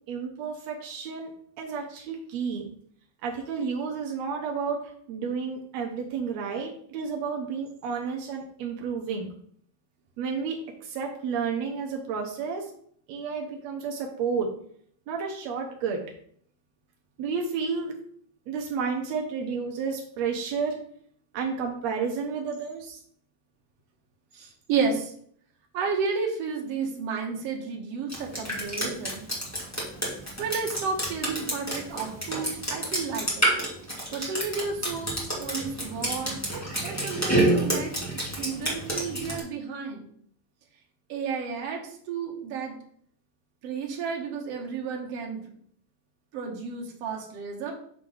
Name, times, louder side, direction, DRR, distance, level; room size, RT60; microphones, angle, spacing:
voice 1, 0.1-1.3 1.6-2.7 3.2-9.3 10.2-12.7 13.1-14.5 15.1-16.0 17.2-18.0 18.5-20.8 21.3-23.0, right 5 dB, 85° right, 1 dB, 1.5 m, -31 dB
voice 2, 24.3-25.1 25.7-29.3 30.4-33.6 34.1-36.4 36.8-40.1 41.1-42.7 43.6-45.4 46.3-47.7, right 5 dB, 60° right, 1 dB, 1.7 m, -32 dB
Drip, 28.1-39.4, right 1 dB, 10° left, 0.7 m, -28 dB
6.5 x 3.9 x 6.1 m, 0.62 s
omnidirectional pair, 4.4 m